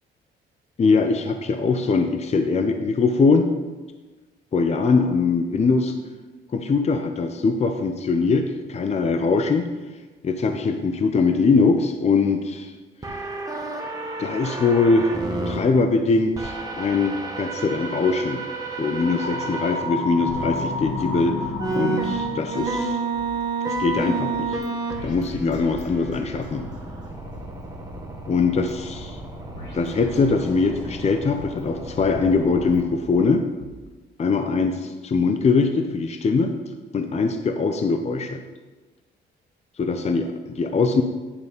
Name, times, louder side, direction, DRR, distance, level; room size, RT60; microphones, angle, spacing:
voice 1, 0.8-3.5 4.5-5.9 6.5-9.7 10.2-12.7 14.2-15.1 15.5-18.4 18.8-21.4 21.7-23.0 23.7-24.6 25.0-26.7 28.3-29.2 29.7-33.4 34.2-36.5 36.9-38.4 39.8-41.0, left 4 dB, 35° left, 6 dB, 0.6 m, -22 dB
sound 1, 13.0-15.6 16.3-19.8 20.3-20.4 21.6-32.8, right 3 dB, 20° right, 1.5 m, -31 dB
sound 2, 18.9-22.9, left 3 dB, 85° left, 1.1 m, -30 dB
sound 3, 20.3-21.8 22.0-22.1 22.6-23.9 24.3-24.7 24.9-26.8 27.2-28.7 29.0-29.1 29.5-30.9 31.3-33.1 33.6-33.7, left 1 dB, 65° left, 2.2 m, -44 dB
9.8 x 5.2 x 4.0 m, 1.2 s
cardioid pair, 90°, 20 cm